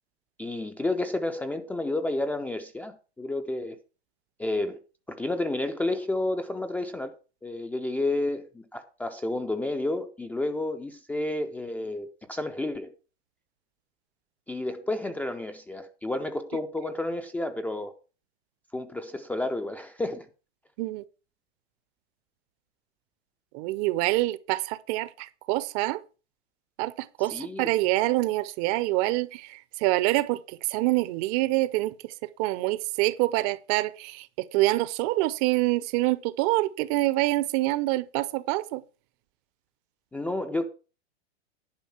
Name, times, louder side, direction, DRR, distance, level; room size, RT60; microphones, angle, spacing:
voice 1, 0.4-3.8 4.4-4.8 5.1-7.1 7.4-12.9 14.5-17.9 18.7-20.3 27.3-27.7 40.1-40.7, left 2 dB, 5° left, 0.4 m, -31 dB
voice 2, 23.5-26.0 26.8-31.9 32.4-34.3 34.5-38.8, right 19 dB, 35° right, 0.7 m, -26 dB
10.5 x 5.1 x 7.1 m
hypercardioid pair, 130°, 33 cm